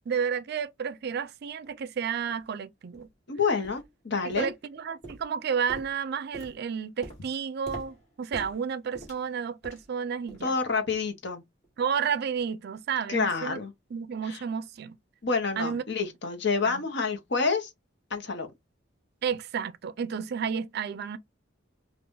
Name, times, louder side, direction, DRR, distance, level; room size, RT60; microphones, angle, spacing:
voice 1, 0.1-3.1 4.4-10.5 11.8-13.6 13.9-15.0 15.6-15.8 16.6-16.8 19.2-21.2, right 7 dB, 55° right, 0.4 m, -31 dB
sound 1, 1.6-1.7 2.3-2.4 2.9-3.1 3.6-3.9 4.3-4.8 5.0-10.0 10.3-10.6 10.9-11.1 11.6-11.7, right 1 dB, 35° left, 2.2 m, -46 dB
voice 2, 3.3-4.5 10.4-11.4 13.1-13.7 14.2-14.4 15.2-17.7 18.1-18.5, left 4 dB, 60° left, 1.0 m, -28 dB
5.3 x 2.5 x 2.6 m
head